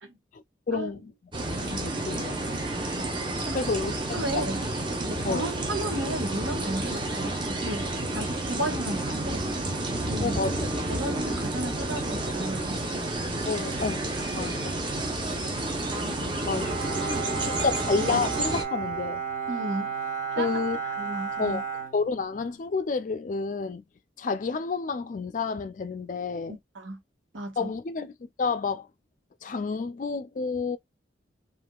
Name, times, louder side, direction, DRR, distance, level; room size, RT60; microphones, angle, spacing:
voice 1, 0.3-1.1 1.5-2.4 3.5-4.5 5.3-5.5 10.2-10.7 13.5-14.1 14.3-14.7 16.2-16.7 17.4-19.2 20.4-20.8 21.4-21.6 21.9-23.8 24.2-26.6 27.6-28.1 28.4-28.9 29.4-30.8, left 4 dB, 40° left, 0.3 m, -30 dB
sound 1, 1.3-18.6, right 2 dB, 25° right, 0.7 m, -30 dB
voice 2, 4.1-4.6 5.0-7.8 8.1-9.4 10.0-10.4 10.9-12.8 14.3-14.5 17.1-17.5 19.5-19.9 20.3-20.6 21.0-21.6 26.5-27.0 27.3-27.7, right 1 dB, 90° right, 1.3 m, -34 dB
Bowed string instrument, 16.5-22.7, right 6 dB, 50° right, 1.0 m, -33 dB
3.5 x 2.5 x 2.3 m
head